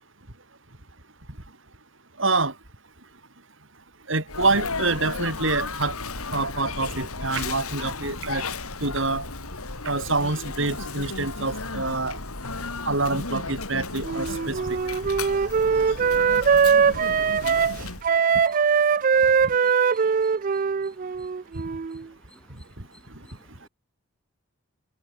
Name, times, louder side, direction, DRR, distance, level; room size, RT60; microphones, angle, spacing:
voice 1, 2.2-2.5 4.1-5.9 6.3-8.5 8.8-9.3 9.8-12.2 12.9-14.8, right 3 dB, 60° right, 3.8 m, -26 dB
Sneeze, 4.3-18.0, left 3 dB, 90° left, 4.3 m, -34 dB
Wind instrument woodwind instrument, 14.0-22.0, right 6 dB, 40° right, 0.3 m, -21 dB
voice 2, 18.3-18.8 19.2-21.3 22.3-22.5 22.9-23.7, left 1 dB, 5° left, 4.0 m, -56 dB
head